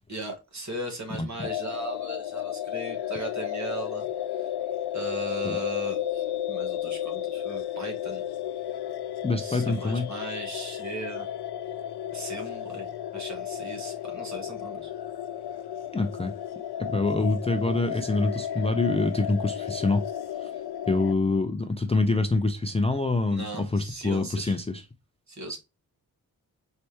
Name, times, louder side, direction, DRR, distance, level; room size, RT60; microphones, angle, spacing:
voice 1, 0.1-4.1 4.4-4.5 4.9-8.2 9.4-11.3 12.1-12.9 13.1-14.9 23.3-24.6 25.3-25.6, right 2 dB, 45° right, 1.5 m, -38 dB
sound 1, 1.4-21.1, left 11 dB, 80° left, 0.5 m, -33 dB
voice 2, 9.2-10.1 15.9-16.3 16.8-20.0 20.4-20.5 20.9-24.9 25.5-25.6, left 3 dB, 15° left, 0.4 m, -26 dB
4.4 x 3.3 x 2.8 m
wide cardioid pair, 160°, 39 cm